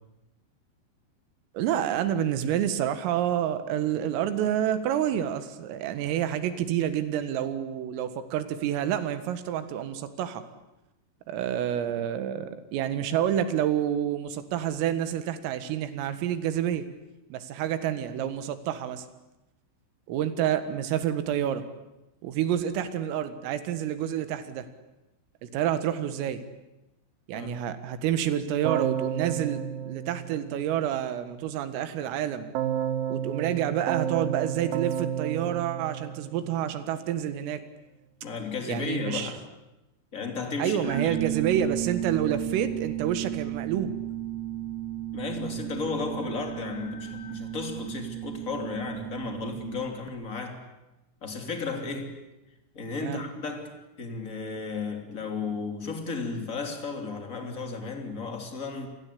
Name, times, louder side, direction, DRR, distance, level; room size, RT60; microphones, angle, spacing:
voice 1, 1.6-10.4 11.3-16.9 17.3-19.1 20.1-21.7 22.2-24.7 25.4-26.4 27.3-32.5 33.1-37.6 38.7-39.3 40.6-44.0 53.0-53.2, right 10 dB, 90° right, 11 dB, 4.3 m, -28 dB
Keyboard (musical), 28.6-31.0 32.5-36.8, right 9 dB, 70° right, 2.1 m, -32 dB
voice 2, 38.2-39.4 40.1-40.8 45.1-50.6 51.2-52.2 52.7-58.9, left 4 dB, 20° left, 4 dB, 2.7 m, -34 dB
sound 1, 40.8-50.1, right 12 dB, 30° right, 3.2 m, -34 dB
29.0 x 22.0 x 8.6 m, 0.96 s
omnidirectional pair, 5.8 m